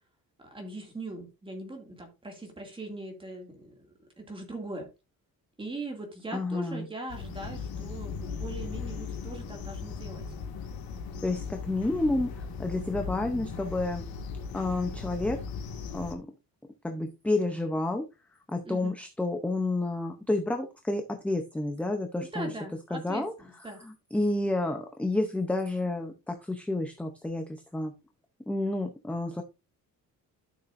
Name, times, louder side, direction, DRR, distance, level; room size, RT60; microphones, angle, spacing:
voice 1, 0.4-3.8 4.2-4.9 5.6-10.3 18.6-19.0 22.3-23.9, right 2 dB, 15° right, 2.2 m, -40 dB
voice 2, 6.3-6.9 11.2-14.0 14.5-15.4 15.9-16.3 16.8-18.0 18.5-22.5 22.9-23.3 23.8-27.9 28.5-29.4, left 2 dB, 5° left, 0.6 m, -30 dB
sound 1, 7.1-16.2, left 5 dB, 80° left, 1.9 m, -38 dB
12.0 x 6.6 x 2.5 m
cardioid pair, 175°, 35 cm